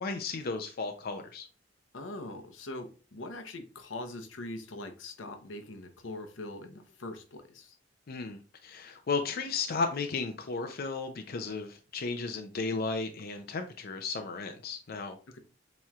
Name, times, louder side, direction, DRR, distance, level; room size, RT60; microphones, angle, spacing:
voice 1, 0.0-1.5 8.1-15.2, left 4 dB, 55° left, 6 dB, 0.5 m, -34 dB
voice 2, 1.9-7.7 15.3-15.4, left 2 dB, 85° left, 6 dB, 0.8 m, -42 dB
7.2 x 3.1 x 2.4 m, 0.36 s
head